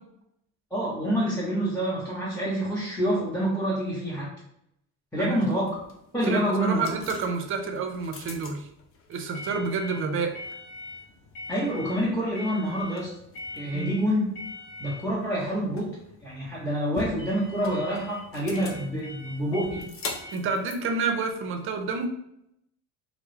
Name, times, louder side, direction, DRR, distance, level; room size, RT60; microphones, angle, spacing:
voice 1, 0.7-4.3 5.1-5.8 6.1-6.9 11.5-13.1 13.5-14.3 14.8-15.9 16.2-19.8, equal, 5° left, -8 dB, 0.7 m, -27 dB
sound 1, 5.4-21.8, left 3 dB, 35° left, 0.5 m, -42 dB
voice 2, 6.3-8.7 9.1-10.4 13.7-13.9 20.3-22.1, right 4 dB, 30° right, 5 dB, 0.5 m, -29 dB
2.2 x 2.0 x 3.1 m, 0.78 s
hypercardioid pair, 70°, 40 cm